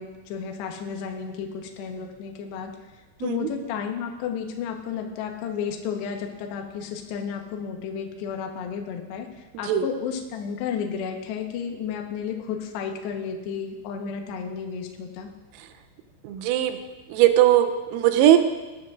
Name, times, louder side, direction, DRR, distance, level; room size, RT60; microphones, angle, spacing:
voice 1, 0.0-2.7 3.2-15.3, left 7 dB, 70° left, 3 dB, 2.8 m, -32 dB
voice 2, 16.3-16.8 17.1-18.4, right 12 dB, 90° right, 8 dB, 3.5 m, -19 dB
20.0 x 12.5 x 2.5 m, 1.2 s
omnidirectional pair, 5.9 m